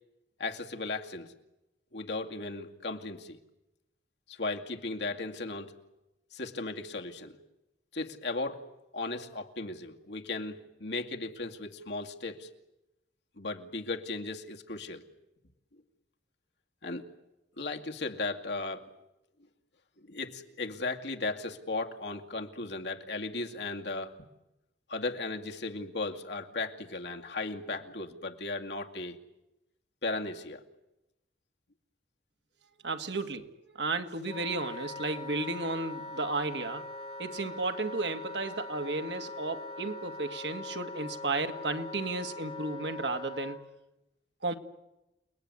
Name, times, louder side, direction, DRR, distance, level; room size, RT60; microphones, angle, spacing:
voice 1, 0.4-1.3 1.9-3.4 4.3-5.7 6.3-7.4 7.9-8.6 8.9-12.5 13.4-15.0 15.7-15.8 16.8-17.1 17.6-18.9 20.0-24.1 24.9-29.2 30.0-30.6, left 3 dB, 80° left, 3 dB, 2.4 m, -36 dB
voice 2, 32.8-36.9 37.2-43.7 44.4-44.5, right 3 dB, 85° right, 7 dB, 2.0 m, -33 dB
Wind instrument woodwind instrument, 34.3-43.6, left 2 dB, 35° left, 2.8 m, -42 dB
29.5 x 20.5 x 9.7 m, 0.94 s
head